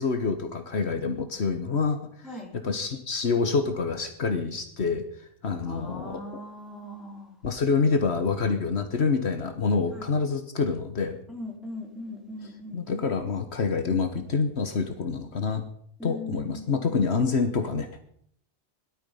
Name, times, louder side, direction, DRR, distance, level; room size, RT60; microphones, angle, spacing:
voice 1, 0.0-5.0 5.4-6.4 7.4-11.2 12.4-15.6 16.0-18.0, left 4 dB, 70° left, 7 dB, 1.5 m, -27 dB
voice 2, 5.6-7.3 9.9-10.1 11.3-13.0 16.0-17.0, left 2 dB, ahead, -3 dB, 4.7 m, -39 dB
18.0 x 12.5 x 5.6 m, 0.65 s
omnidirectional pair, 1.2 m